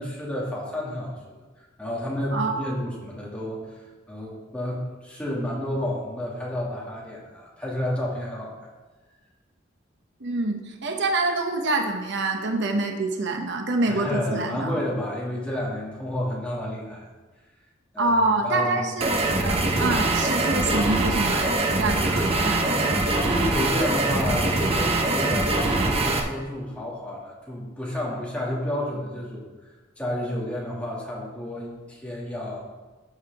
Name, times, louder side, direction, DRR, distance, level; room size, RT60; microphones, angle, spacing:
voice 1, 0.0-3.8 4.1-8.5 13.9-17.0 17.9-18.2 18.4-18.9 22.6-29.7 30.0-32.6, left 1 dB, 5° left, -5 dB, 2.3 m, -31 dB
voice 2, 2.3-2.7 10.2-14.8 18.0-19.1 19.4-23.0, right 2 dB, 65° right, 4 dB, 0.9 m, -26 dB
sound 1, 19.0-26.2, right 2 dB, 30° right, 1.1 m, -23 dB
14.0 x 6.5 x 3.6 m, 1.2 s
head